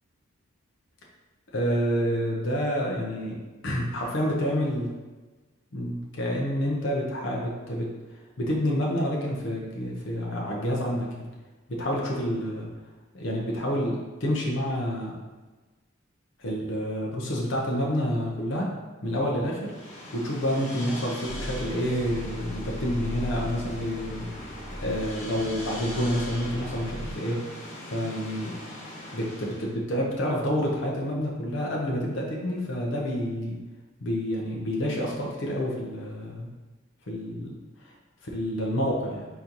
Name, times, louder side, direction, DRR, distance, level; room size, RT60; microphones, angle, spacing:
voice 1, 1.5-3.4 3.6-4.9 5.7-7.9 8.4-11.3 11.7-12.7 13.1-15.2 16.4-18.7 19.0-19.7 20.1-24.3 24.8-27.4 27.9-28.5 29.1-33.6 34.0-36.5 37.1-37.6 38.2-39.3, equal, 65° left, -3 dB, 0.8 m, -28 dB
sound 1, 19.6-29.7, left 1 dB, 30° left, 1.1 m, -41 dB
sound 2, 21.2-27.1, equal, ahead, 1.3 m, -39 dB
4.1 x 3.9 x 2.9 m, 1.2 s
head